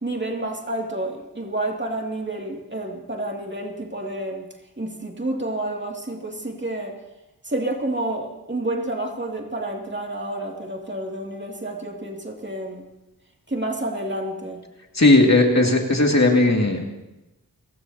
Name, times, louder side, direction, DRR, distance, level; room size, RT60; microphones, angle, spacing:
voice 1, 0.0-4.5 4.8-7.0 7.4-12.9 13.5-14.6, right 1 dB, 30° right, 1 dB, 2.5 m, -29 dB
voice 2, 14.9-16.8, left 2 dB, 45° left, 1 dB, 2.5 m, -16 dB
29.0 x 16.5 x 2.8 m, 0.96 s
wide cardioid pair, 55°, 37 cm